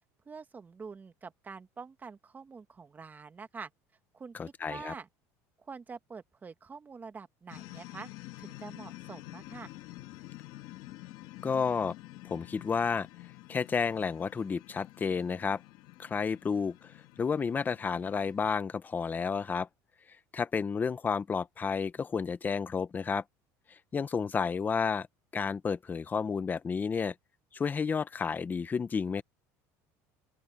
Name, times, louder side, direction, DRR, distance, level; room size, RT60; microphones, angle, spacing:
voice 1, 0.3-3.7 4.1-4.3 4.7-5.1 5.6-8.1 8.4-9.7, right 5 dB, 25° right, 2.0 m, -46 dB
voice 2, 4.4-4.9 11.4-11.9 12.2-13.1 13.5-15.6 16.0-19.7 20.3-23.2 23.7-25.1 25.3-27.1 27.5-29.2, left 5 dB, 25° left, 0.9 m, -31 dB
sound 1, 7.5-18.5, left 19 dB, 65° left, 1.9 m, -49 dB
open air
supercardioid pair, 115°, 8 cm